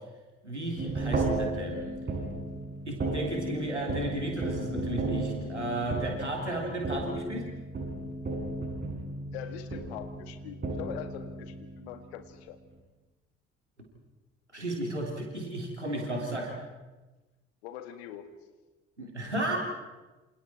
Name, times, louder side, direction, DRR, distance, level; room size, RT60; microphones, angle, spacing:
voice 1, 0.4-1.9 2.9-7.5 14.5-16.6 19.0-19.6, right 1 dB, 90° right, 0 dB, 3.3 m, -33 dB
sound 1, 0.8-12.4, right 2 dB, 30° right, 6.8 m, -34 dB
voice 2, 9.3-12.6 17.6-18.3, left 10 dB, 70° left, 9 dB, 1.8 m, -43 dB
27.5 x 27.5 x 4.3 m, 1.2 s
figure-of-eight pair, 50°, 34 cm